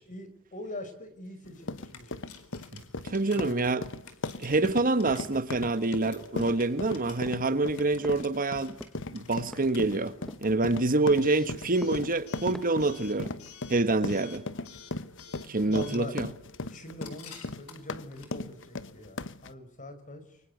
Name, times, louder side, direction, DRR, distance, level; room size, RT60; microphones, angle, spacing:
voice 1, 0.0-2.3 3.3-3.7 15.7-16.1 16.7-20.4, left 2 dB, 35° left, 5.2 m, -43 dB
sound 1, 1.4-19.5, left 2 dB, 60° left, 1.2 m, -38 dB
Coin (dropping) / Alarm, 1.6-19.1, left 6 dB, 90° left, 4.6 m, -52 dB
voice 2, 2.7-3.9 4.4-8.8 9.1-10.1 10.4-13.3 13.7-14.4 15.5-16.3, right 2 dB, 40° right, 1.4 m, -26 dB
sound 2, 6.5-6.9 7.3-7.6 8.0-8.3 8.8-9.0 9.5-9.8 10.3-10.6 11.1-11.3 11.8-12.1 12.5-12.9 13.2-13.6, equal, ahead, 1.4 m, -45 dB
29.0 x 24.5 x 8.2 m
head